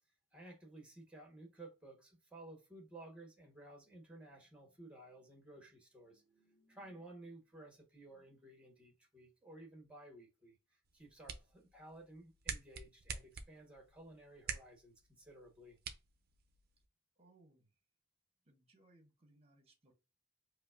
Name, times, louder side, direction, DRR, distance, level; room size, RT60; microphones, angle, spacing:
voice 1, 0.3-15.8, right 2 dB, 5° right, 1.1 m, -56 dB
sound 1, 10.8-16.9, right 6 dB, 50° right, 0.5 m, -48 dB
voice 2, 17.2-17.7 18.4-19.9, right 2 dB, 30° right, 0.9 m, -67 dB
4.9 x 2.1 x 2.4 m
head